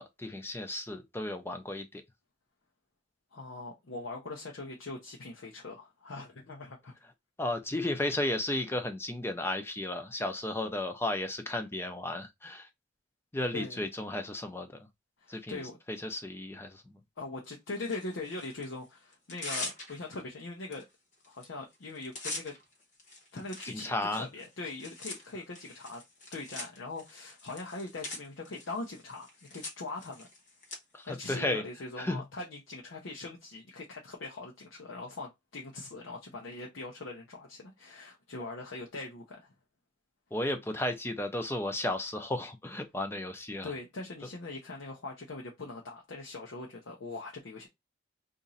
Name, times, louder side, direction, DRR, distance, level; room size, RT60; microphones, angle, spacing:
voice 1, 0.0-2.0 7.4-12.7 13.3-14.8 15.3-15.6 15.9-17.0 23.7-24.3 30.9-31.6 32.0-32.2 40.3-43.7, left 1 dB, 10° left, 0.4 m, -34 dB
voice 2, 3.3-7.0 13.5-13.9 15.2-15.8 17.2-20.8 21.3-22.5 23.3-26.0 26.3-30.3 31.1-39.5 43.6-47.7, left 3 dB, 70° left, 0.7 m, -41 dB
Tearing, 17.8-18.7 19.1-20.2 20.7-20.8 21.1-21.5 21.7-30.8, left 2 dB, 40° left, 0.9 m, -43 dB
2.9 x 2.6 x 3.9 m
head